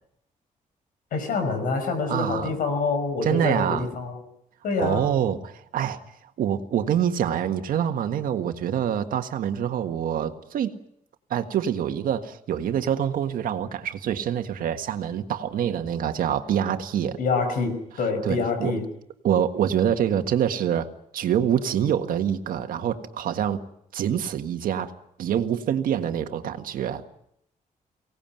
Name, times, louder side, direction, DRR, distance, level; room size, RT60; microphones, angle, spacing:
voice 1, 1.1-4.2 4.6-5.1 17.2-18.8, left 4 dB, 85° left, 7 dB, 5.9 m, -26 dB
voice 2, 2.1-2.5 3.2-3.9 4.8-6.0 6.4-10.8 11.3-17.2 18.2-18.7 19.2-20.9 21.1-23.6 23.9-24.9 25.2-27.0, right 9 dB, 85° right, 7 dB, 1.7 m, -25 dB
24.0 x 18.0 x 9.1 m, 0.75 s
wide cardioid pair, 170°, 14 cm